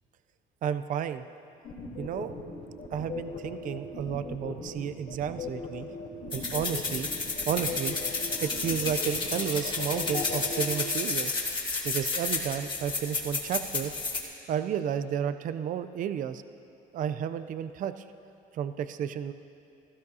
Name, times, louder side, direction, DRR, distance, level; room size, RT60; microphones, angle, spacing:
voice 1, 0.6-1.2 2.0-2.3 2.9-5.9 6.3-7.1 7.5-8.0 8.4-11.3 11.8-13.9 14.5-16.4 16.9-18.0 18.5-19.3, right 8 dB, 50° right, 11 dB, 0.5 m, -32 dB
sound 1, 1.6-10.6, left 4 dB, 65° left, 3.5 m, -38 dB
sound 2, 6.3-14.2, left 3 dB, 30° left, 2.2 m, -31 dB
17.0 x 15.0 x 2.7 m, 2.7 s
cardioid pair, 110°, 17 cm